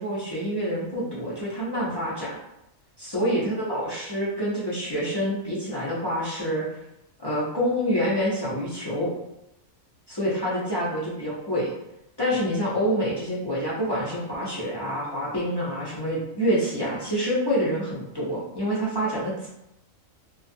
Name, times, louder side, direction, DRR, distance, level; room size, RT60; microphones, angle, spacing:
voice 1, 0.0-2.4 3.0-6.6 7.2-9.1 10.1-11.7 12.2-19.5, equal, 35° left, -8 dB, 0.4 m, -27 dB
2.5 x 2.3 x 2.6 m, 0.85 s
omnidirectional pair, 1.4 m